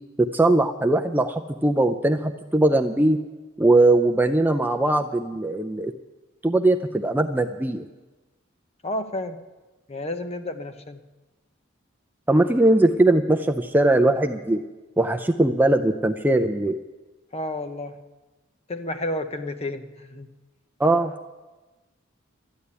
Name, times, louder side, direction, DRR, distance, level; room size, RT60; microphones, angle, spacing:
voice 1, 0.2-3.2 3.6-5.9 6.4-7.8 12.3-14.6 15.0-16.8 20.8-21.1, right 2 dB, 10° right, 6 dB, 0.4 m, -20 dB
voice 2, 8.8-9.4 9.9-11.0 17.3-18.0 18.7-20.3, left 1 dB, 30° left, 9 dB, 0.8 m, -31 dB
12.5 x 8.5 x 9.6 m, 1.2 s
head